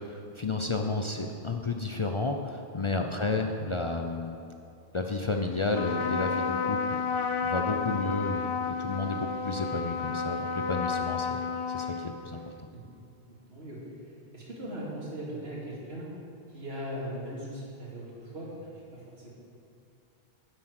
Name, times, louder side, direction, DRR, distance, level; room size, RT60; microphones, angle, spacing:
voice 1, 0.0-4.4 4.9-7.0 7.4-11.4 11.7-12.5, left 3 dB, 40° left, 3 dB, 0.5 m, -32 dB
Trumpet, 5.7-12.5, left 5 dB, 65° left, 0.9 m, -31 dB
voice 2, 13.3-16.1 16.5-19.3, equal, 80° right, -5 dB, 2.8 m, -40 dB
10.0 x 7.5 x 6.5 m, 2.6 s
omnidirectional pair, 1.0 m